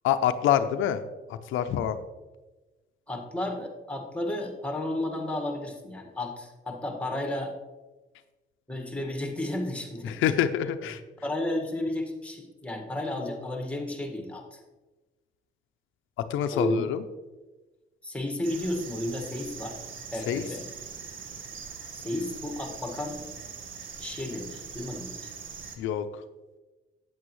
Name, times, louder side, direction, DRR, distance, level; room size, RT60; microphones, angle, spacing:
voice 1, 0.0-1.0 1.3-2.0 10.0-11.0 16.3-17.0 20.3-20.4 25.8-26.2, left 10 dB, 80° left, 9 dB, 0.5 m, -26 dB
voice 2, 3.1-7.5 8.7-10.2 11.2-14.6 16.5-16.8 18.0-19.8 20.1-20.6 21.9-23.2 24.0-25.3, left 1 dB, 5° left, 3 dB, 1.6 m, -32 dB
sound 1, 18.4-25.8, right 6 dB, 80° right, 1.2 m, -42 dB
8.7 x 8.3 x 3.1 m, 1.2 s
cardioid pair, 90°, 20 cm